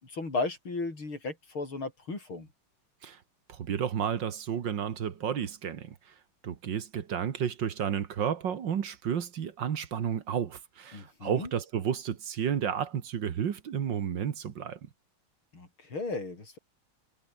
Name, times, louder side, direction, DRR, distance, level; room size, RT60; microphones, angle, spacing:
voice 1, 0.0-2.5 10.9-11.5 15.5-16.6, left 3 dB, 85° left, 6.7 m, -35 dB
voice 2, 3.5-6.1 6.4-14.9, right 8 dB, 65° right, 2.0 m, -32 dB
omnidirectional pair, 2.2 m